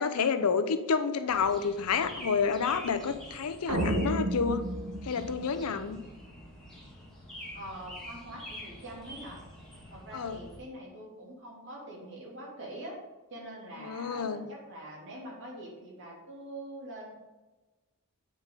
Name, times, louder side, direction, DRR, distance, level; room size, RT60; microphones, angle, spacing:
voice 1, 0.0-4.6 5.0-6.0 10.1-10.4 13.8-14.5, left 5 dB, 75° left, 11 dB, 0.6 m, -29 dB
sound 1, 1.3-10.6, equal, ahead, 1.7 m, -47 dB
sound 2, 3.7-6.1, right 1 dB, 75° right, 1.0 m, -32 dB
voice 2, 7.5-9.4 9.9-13.0 13.3-17.2, right 1 dB, 55° right, -3 dB, 2.4 m, -44 dB
8.4 x 4.8 x 3.7 m, 1.1 s
head